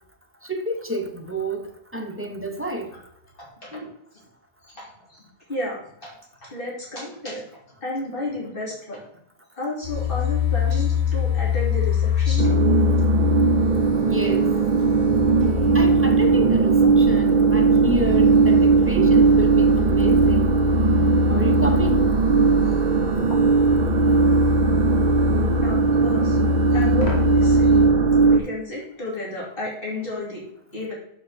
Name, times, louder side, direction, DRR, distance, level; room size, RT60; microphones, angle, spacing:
voice 1, 0.4-2.9 14.0-14.5 15.7-20.6 21.3-22.1, right 1 dB, 15° right, 3 dB, 0.9 m, -29 dB
voice 2, 3.4-3.9 4.7-5.2 5.5-6.1 6.4-7.4 7.8-9.0 9.6-13.1 14.1-14.2 22.6-22.7 25.6-26.4 26.7-27.8 28.2-30.4 30.7-30.9, left 2 dB, 55° left, -5 dB, 3.1 m, -32 dB
sound 1, 9.8-27.9, left 9 dB, 70° left, 1.6 m, -25 dB
sound 2, 12.4-28.4, right 5 dB, 50° right, 0.8 m, -18 dB
6.7 x 6.2 x 4.2 m, 0.75 s
omnidirectional pair, 1.1 m